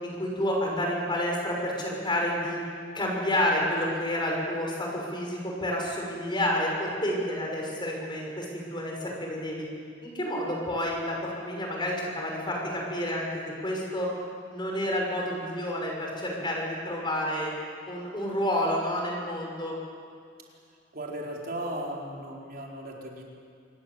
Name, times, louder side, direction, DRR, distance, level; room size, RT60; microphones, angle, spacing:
voice 1, 0.0-2.6 2.9-9.7 10.0-13.3 13.6-14.1 14.5-17.5 17.9-19.8, left 1 dB, 25° left, -1 dB, 6.3 m, -29 dB
voice 2, 20.9-23.2, right 1 dB, 50° right, -2 dB, 4.5 m, -36 dB
27.0 x 20.0 x 8.0 m, 2.3 s
head